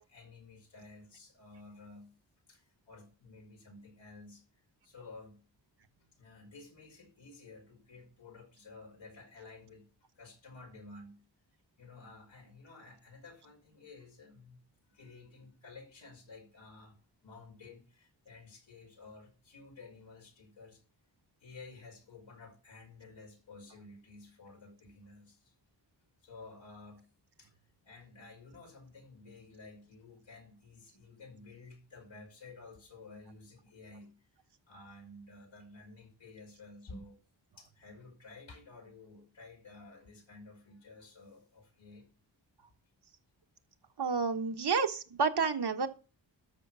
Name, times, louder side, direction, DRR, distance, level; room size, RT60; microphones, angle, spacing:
voice 1, 0.1-2.1 2.5-5.4 6.2-9.9 10.2-11.2 11.8-14.6 14.9-17.0 17.2-20.8 21.4-25.5 26.2-27.1 27.4-27.5 27.8-34.3 34.7-37.2 37.6-42.1, left 3 dB, 85° left, 5.5 m, -53 dB
voice 2, 44.0-45.9, right 5 dB, 60° right, 1.4 m, -30 dB
13.5 x 6.2 x 6.2 m
wide cardioid pair, 140°, 44 cm